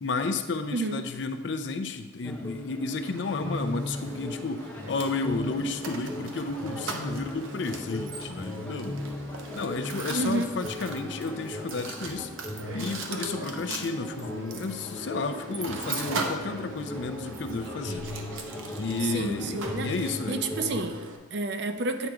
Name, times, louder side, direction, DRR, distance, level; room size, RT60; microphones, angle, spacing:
voice 1, 0.0-9.1 9.5-12.3 12.7-18.1 18.8-20.4, left 3 dB, 65° left, 8 dB, 0.5 m, -32 dB
voice 2, 0.7-1.0 10.1-10.5 19.0-19.9 20.3-22.1, right 2 dB, 60° right, 7 dB, 0.5 m, -30 dB
sound 1, 2.2-20.9, left 1 dB, 10° left, 0.6 m, -38 dB
Mechanisms, 3.0-21.2, right 2 dB, 85° right, 0.8 m, -39 dB
9.0 x 3.7 x 4.6 m, 1.3 s
head